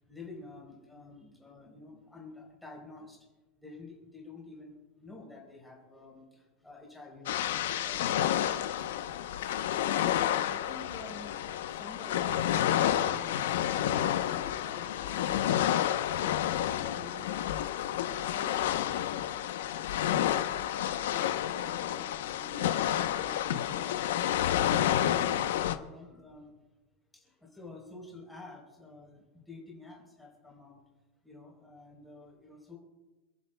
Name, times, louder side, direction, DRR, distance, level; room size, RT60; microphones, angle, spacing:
voice 1, 0.0-3.3 3.6-26.5 27.1-30.8 31.2-32.8, left 3 dB, 5° left, -3 dB, 3.7 m, -50 dB
sound 1, 7.3-25.8, left 11 dB, 85° left, 0.8 m, -30 dB
27.5 x 11.0 x 2.3 m, 1.1 s
supercardioid pair, 170°, 0 cm